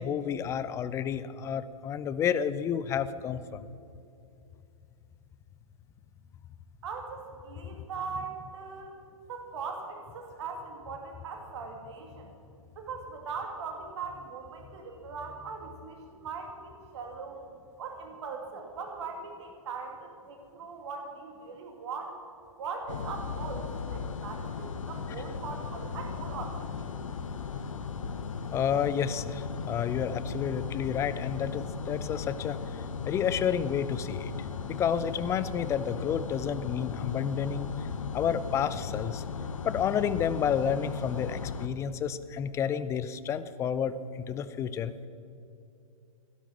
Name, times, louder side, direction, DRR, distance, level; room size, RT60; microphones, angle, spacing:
voice 1, 0.0-3.6 28.5-34.3 34.7-37.7 38.1-39.2 39.6-45.1, left 8 dB, 15° left, 14 dB, 0.5 m, -30 dB
voice 2, 6.8-9.0 9.3-12.3 12.8-17.4 17.8-22.2 22.6-26.9, right 5 dB, 50° right, 3 dB, 2.3 m, -40 dB
sound 1, 22.9-41.7, left 5 dB, 65° left, 1.1 m, -37 dB
16.5 x 12.5 x 6.2 m, 2.6 s
figure-of-eight pair, 120°, 18 cm